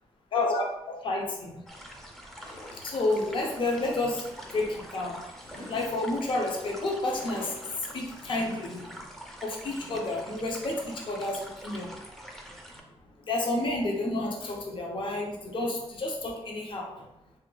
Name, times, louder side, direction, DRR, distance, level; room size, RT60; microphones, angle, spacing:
voice 1, 0.3-1.6 2.8-5.2 5.7-7.5 7.9-9.0 9.4-12.0 13.3-16.9, left 2 dB, 50° left, -1 dB, 0.6 m, -30 dB
sound 1, 1.7-12.8, equal, 5° left, 0.4 m, -46 dB
sound 2, 2.4-9.0, left 1 dB, 70° left, 1.3 m, -49 dB
3.3 x 2.2 x 3.1 m, 0.91 s
wide cardioid pair, 150°, 11 cm